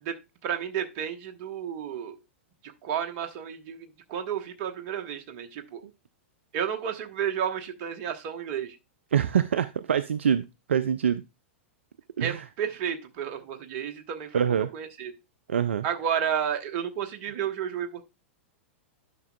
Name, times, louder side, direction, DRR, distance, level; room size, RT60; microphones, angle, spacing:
voice 1, 0.0-2.2 2.6-5.8 6.5-8.8 12.2-15.1 15.8-18.0, right 8 dB, 45° right, 1.1 m, -32 dB
voice 2, 9.1-11.2 12.2-12.4 14.3-14.7 15.5-15.8, right 8 dB, 65° right, 0.4 m, -25 dB
10.5 x 5.9 x 2.3 m
figure-of-eight pair, 100°, 7 cm